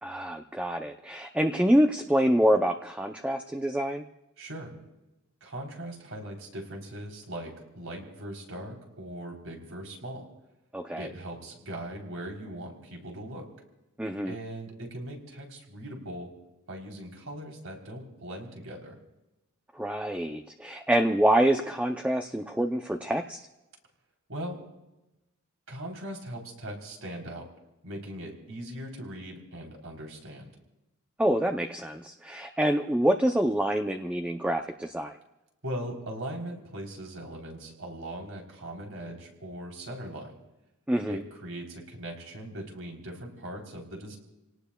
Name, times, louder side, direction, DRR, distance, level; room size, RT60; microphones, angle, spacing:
voice 1, 0.0-4.0 10.7-11.1 14.0-14.4 19.7-23.4 31.2-35.2 40.9-41.2, right 1 dB, 5° right, 5 dB, 0.5 m, -26 dB
voice 2, 4.4-4.7 5.4-10.3 11.0-13.4 14.3-16.3 16.7-19.0 24.3-24.6 25.7-27.5 27.8-30.5 35.6-40.4 41.1-44.2, right 1 dB, 70° right, 0 dB, 3.6 m, -40 dB
29.5 x 18.5 x 2.3 m, 0.97 s
head